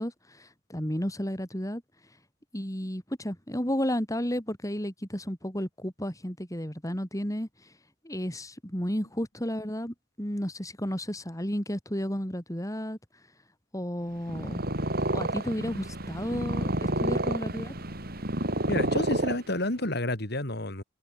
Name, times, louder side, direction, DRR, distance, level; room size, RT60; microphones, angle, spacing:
voice 1, 0.0-1.8 2.5-7.5 8.0-13.0 13.7-14.6 15.1-17.7, equal, 20° left, 6.6 m, -32 dB
Purr, 14.2-19.9, right 1 dB, 55° right, 5.3 m, -30 dB
voice 2, 18.7-20.8, left 1 dB, 60° left, 4.7 m, -30 dB
head